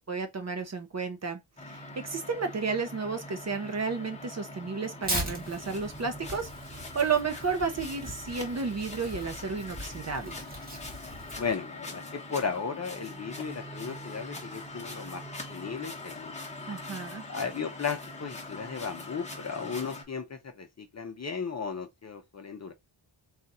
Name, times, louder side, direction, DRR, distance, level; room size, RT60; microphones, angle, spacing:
voice 1, 0.1-1.4 1.7-10.4 16.7-17.2, right 5 dB, 35° right, 0.6 m, -32 dB
sound 1, 1.6-20.0, left 2 dB, 15° left, 0.9 m, -43 dB
Tearing, 5.0-11.5, right 1 dB, 20° right, 1.1 m, -39 dB
voice 2, 11.4-15.2 15.5-16.3 17.3-22.7, left 5 dB, 35° left, 0.6 m, -35 dB
3.9 x 2.5 x 4.0 m
wide cardioid pair, 175°, 50 cm